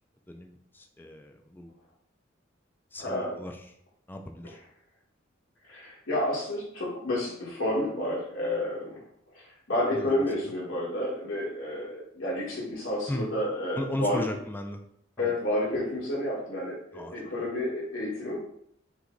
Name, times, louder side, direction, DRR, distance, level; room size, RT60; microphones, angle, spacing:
voice 1, 0.3-1.7 2.9-3.7 4.1-4.6 9.9-10.5 13.1-13.3 13.8-14.8 15.2-15.3 16.9-17.2, left 1 dB, 10° left, 4 dB, 0.3 m, -37 dB
voice 2, 3.0-3.4 5.7-9.0 9.3-14.2 15.2-18.4, left 1 dB, 85° left, -6 dB, 1.6 m, -30 dB
5.8 x 2.2 x 3.9 m, 0.68 s
head